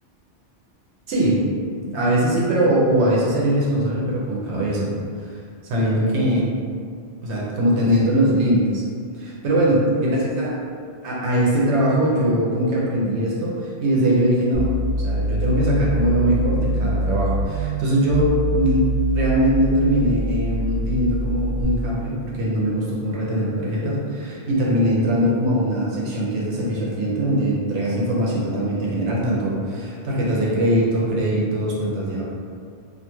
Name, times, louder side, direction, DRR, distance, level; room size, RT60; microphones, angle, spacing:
voice 1, 1.1-1.4 1.8-4.9 5.6-6.5 7.2-8.8 9.2-10.6 11.0-14.7 15.0-32.2, right 1 dB, 75° right, -5 dB, 0.8 m, -21 dB
sound 1, 14.5-21.6, equal, 60° left, 0.9 m, -24 dB
2.4 x 2.2 x 2.9 m, 2.2 s
omnidirectional pair, 1.2 m